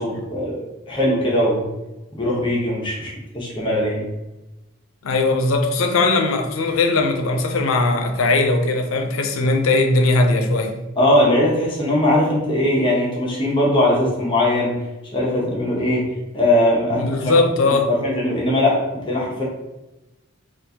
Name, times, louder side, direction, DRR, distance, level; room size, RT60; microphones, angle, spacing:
voice 1, 0.0-1.6 2.1-4.1 11.0-14.7 15.1-16.1 16.3-17.4 17.9-19.4, left 1 dB, 25° left, -4 dB, 0.8 m, -20 dB
voice 2, 5.0-10.7 17.0-17.9, left 3 dB, 80° left, 4 dB, 0.5 m, -19 dB
3.7 x 2.4 x 2.8 m, 1.0 s
head